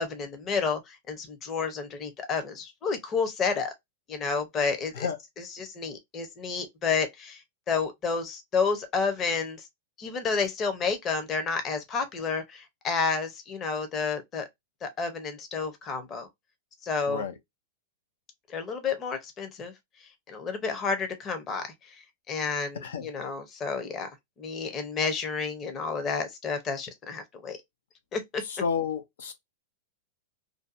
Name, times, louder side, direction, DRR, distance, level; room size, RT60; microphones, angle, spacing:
voice 1, 0.0-3.7 4.1-5.1 5.4-7.4 7.7-9.6 10.0-14.5 14.8-16.3 16.8-17.3 18.5-19.7 20.3-22.0 22.3-24.1 24.4-27.6 28.1-28.4, left 5 dB, 25° left, 0.7 m, -30 dB
voice 2, 28.5-29.3, left 6 dB, 85° left, 0.5 m, -31 dB
2.6 x 2.2 x 2.5 m
hypercardioid pair, 135°, 0 cm